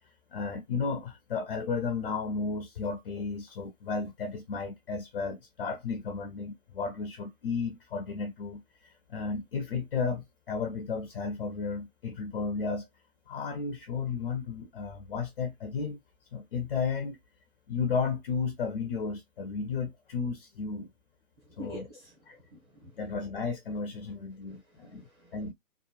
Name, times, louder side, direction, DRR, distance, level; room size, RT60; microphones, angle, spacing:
voice 1, 0.3-8.6 9.1-12.9 13.3-16.0 16.3-17.2 17.7-20.9 21.6-21.9 22.3-22.4 23.0-25.0 25.3-25.5, left 5 dB, 45° left, 0.5 m, -33 dB
voice 2, 21.5-22.2 22.5-23.0 24.5-25.3, right 1 dB, 20° right, 0.7 m, -47 dB
2.9 x 2.1 x 2.3 m
figure-of-eight pair, 130°, 44 cm